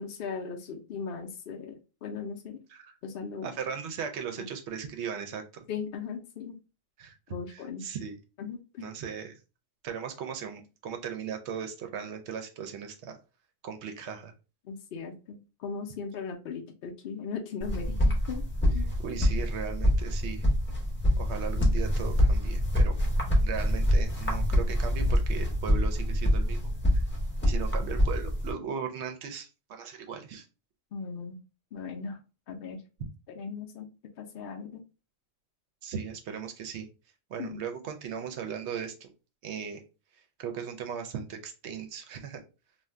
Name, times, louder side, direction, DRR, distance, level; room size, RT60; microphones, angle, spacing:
voice 1, 0.0-2.6 3.0-3.5 4.4-4.5 5.7-6.6 7.3-7.8 8.4-8.9 14.7-18.4 18.7-18.9 30.9-31.4 31.7-32.2 32.5-32.8 33.4-33.9 34.2-34.8 37.4-37.6, left 5 dB, 65° left, 2 dB, 0.6 m, -38 dB
voice 2, 3.4-5.7 7.0-7.2 7.5-8.1 8.8-9.3 9.8-13.2 13.6-14.3 19.0-20.4 21.2-23.0 23.4-26.6 26.9-27.0 27.4-30.5 35.8-36.9 37.3-39.1 39.4-39.8 40.4-42.4, right 7 dB, 65° right, 6 dB, 0.8 m, -37 dB
sound 1, 17.6-28.5, equal, 10° left, 0.7 m, -26 dB
2.5 x 2.2 x 3.3 m, 0.31 s
omnidirectional pair, 1.4 m